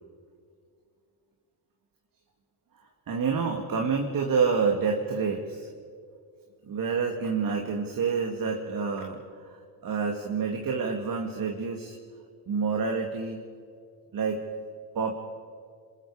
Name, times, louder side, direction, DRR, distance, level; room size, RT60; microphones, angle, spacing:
voice 1, 3.1-5.7 6.6-12.0 12.5-13.4 14.1-14.4 14.9-15.1, right 5 dB, 45° right, 2 dB, 2.4 m, -28 dB
26.5 x 20.5 x 5.0 m, 2.2 s
supercardioid pair, 80°, 49 cm